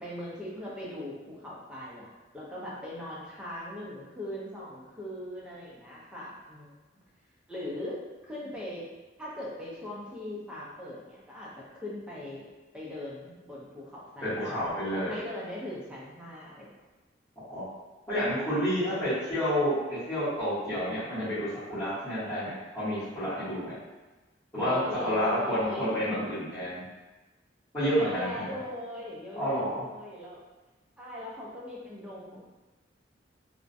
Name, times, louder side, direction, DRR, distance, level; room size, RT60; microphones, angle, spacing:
voice 1, 0.0-2.1 2.3-6.7 7.5-8.9 9.2-12.4 12.7-16.7 24.6-26.0 27.9-30.4 31.0-32.5, left 1 dB, 5° right, -7 dB, 0.5 m, -40 dB
voice 2, 14.2-15.1 17.5-17.6 18.1-23.7 24.5-24.8 25.0-26.8 27.7-28.6 29.3-29.9, equal, 25° left, -19 dB, 1.1 m, -29 dB
2.4 x 2.1 x 2.5 m, 1.2 s
head